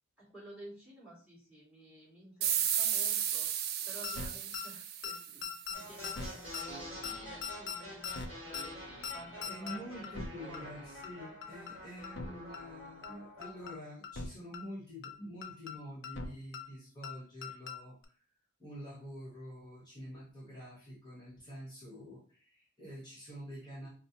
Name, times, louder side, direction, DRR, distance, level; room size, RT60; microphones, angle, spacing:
voice 1, 0.2-10.7, right 2 dB, 5° right, -7 dB, 1.8 m, -53 dB
sound 1, 2.4-5.7, right 9 dB, 45° right, 0.3 m, -33 dB
sound 2, 4.0-4.3 4.5-4.6 5.0-5.1 5.4-5.8 6.0-6.3 6.5-6.6 7.0-7.1 7.4-7.8 8.0-8.3 8.5-8.6 9.0-9.1 9.4-9.8 10.0-10.3 10.5-10.6 11.0-11.1 11.4-11.7 12.0-12.3 12.5-12.6 13.0-13.1 13.4-13.7 14.0-14.3 14.5-14.6 15.0-15.1 15.4-15.8 16.0-16.3 16.5-16.6 17.0-17.1 17.4-17.8 18.0-18.1, left 6 dB, 55° left, 0.5 m, -40 dB
sound 3, 5.7-13.8, equal, 25° right, 1.6 m, -48 dB
voice 2, 9.4-18.0 18.6-23.9, equal, 20° left, -8 dB, 1.2 m, -47 dB
5.0 x 2.1 x 2.8 m, 0.41 s
head